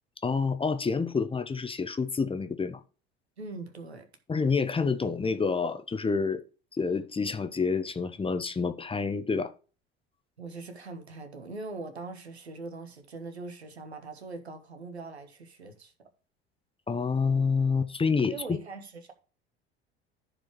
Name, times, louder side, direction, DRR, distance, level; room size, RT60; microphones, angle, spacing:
voice 1, 0.2-2.8 4.3-6.4 6.7-9.5 16.9-18.3, left 5 dB, 15° left, 1.0 m, -28 dB
voice 2, 3.4-4.0 10.4-15.9 18.3-19.1, right 3 dB, 85° right, 1.4 m, -41 dB
14.5 x 4.9 x 3.2 m
figure-of-eight pair, 65°, 32 cm